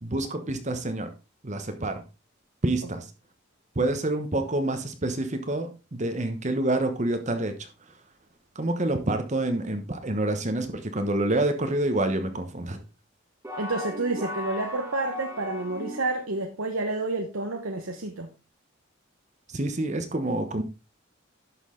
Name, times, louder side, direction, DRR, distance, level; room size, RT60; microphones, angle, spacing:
voice 1, 0.0-1.1 1.4-2.0 2.6-3.1 3.7-7.9 8.5-12.8 19.5-20.6, right 2 dB, 35° right, 7 dB, 1.1 m, -27 dB
sound 1, 13.4-16.3, left 1 dB, 10° right, 1.9 m, -37 dB
voice 2, 13.6-18.3, right 2 dB, 85° right, 4 dB, 1.2 m, -29 dB
11.5 x 6.4 x 3.8 m, 0.30 s
head